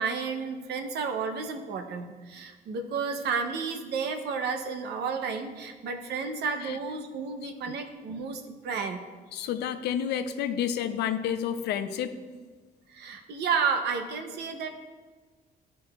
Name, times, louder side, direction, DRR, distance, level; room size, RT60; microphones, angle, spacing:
voice 1, 0.0-9.0 12.9-14.7, right 5 dB, 90° right, 6 dB, 0.7 m, -31 dB
voice 2, 9.3-12.2, left 9 dB, 85° left, 9 dB, 0.5 m, -30 dB
14.0 x 5.0 x 2.4 m, 1.4 s
cardioid pair, 180°, 17 cm